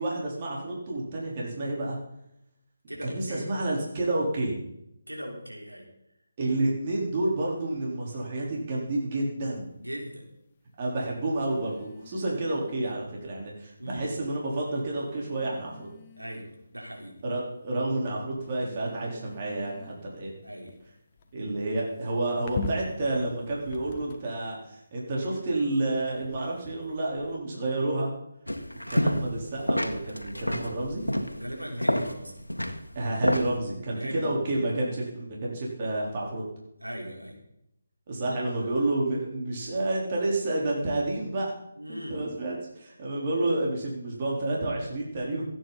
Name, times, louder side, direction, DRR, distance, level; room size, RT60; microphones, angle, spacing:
voice 1, 0.0-2.0 3.0-4.6 6.4-9.7 10.8-15.9 17.2-20.3 21.3-28.1 28.9-31.0 32.9-36.4 38.1-41.6 41.9-45.4, right 2 dB, 35° right, -3 dB, 4.1 m, -30 dB
voice 2, 2.9-3.6 5.1-5.9 9.8-10.2 13.8-14.1 16.2-17.2 20.4-20.8 31.3-32.4 34.0-34.6 36.8-37.4 38.3-38.7 41.8-42.2, equal, 85° right, -1 dB, 4.1 m, -39 dB
sound 1, 9.4-9.7 11.4-13.2 14.2-14.3 14.9-16.7 17.2-17.7 18.4-24.5 25.2-27.4, left 4 dB, 30° left, 1.4 m, -43 dB
sound 2, 28.5-29.4 29.7-33.6, equal, 85° left, 1.7 m, -28 dB
27.0 x 9.4 x 4.2 m, 0.82 s
figure-of-eight pair, 150°, 0 cm